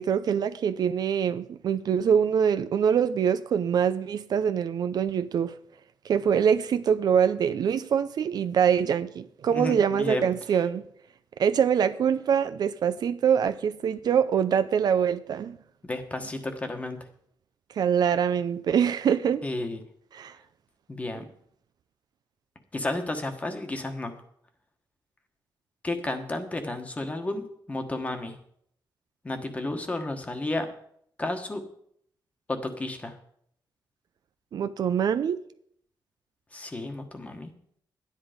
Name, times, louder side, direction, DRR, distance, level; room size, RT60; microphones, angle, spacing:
voice 1, 0.0-5.6 6.0-10.8 11.4-15.6 17.8-19.4 20.1-20.3 34.5-35.4, right 8 dB, 60° right, 0.5 m, -24 dB
voice 2, 9.5-10.3 15.8-17.0 19.4-19.8 20.9-21.2 22.7-24.2 25.8-28.4 29.2-30.7 31.2-31.6 32.5-33.2 36.5-37.5, left 2 dB, 20° left, 1.3 m, -32 dB
12.0 x 10.0 x 5.1 m
wide cardioid pair, 175°, 8 cm